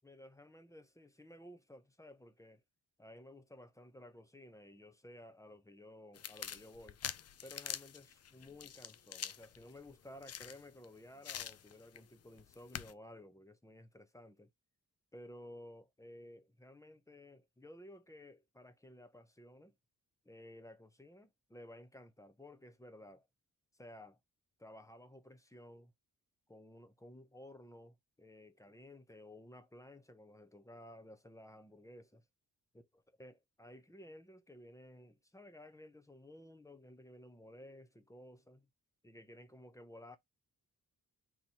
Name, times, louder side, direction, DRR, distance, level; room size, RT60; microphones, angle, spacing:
voice 1, 0.0-2.6 3.0-7.0 7.4-14.5 15.1-19.7 20.2-23.3 23.7-24.2 24.6-25.9 26.5-32.2 32.7-32.9 33.2-38.7 39.0-40.2, left 1 dB, 10° left, 0.7 m, -55 dB
sound 1, 6.1-10.8 11.2-12.0 12.4-12.9, left 9 dB, 45° left, 0.4 m, -46 dB
4.0 x 3.0 x 2.9 m
wide cardioid pair, 100°, 37 cm